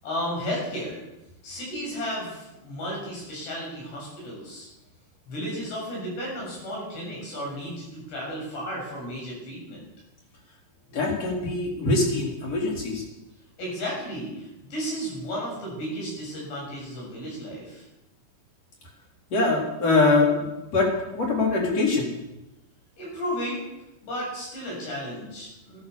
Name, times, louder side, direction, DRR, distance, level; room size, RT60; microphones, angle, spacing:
voice 1, 0.0-1.0 1.4-4.7 5.3-9.8 13.6-17.8 23.0-23.6 24.0-25.8, equal, 80° left, -3 dB, 9.7 m, -33 dB
voice 2, 10.9-13.0 19.3-20.9 21.1-22.1, left 3 dB, 40° left, -1 dB, 4.4 m, -23 dB
15.0 x 13.0 x 7.0 m, 0.95 s
omnidirectional pair, 4.8 m